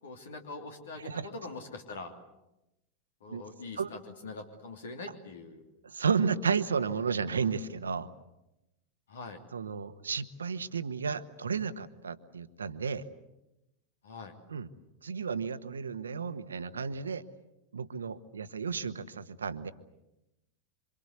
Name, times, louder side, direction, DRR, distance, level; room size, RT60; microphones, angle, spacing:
voice 1, 0.0-2.1 3.2-5.7 9.1-9.4 14.0-14.3, left 3 dB, 65° left, 5 dB, 3.0 m, -43 dB
voice 2, 1.0-1.3 3.3-3.4 3.8-3.9 5.8-8.1 9.5-13.0 14.5-14.7 15.0-17.2 17.7-19.7, right 6 dB, 75° right, 12 dB, 1.3 m, -32 dB
27.0 x 26.0 x 8.2 m, 0.92 s
figure-of-eight pair, 90°, 0 cm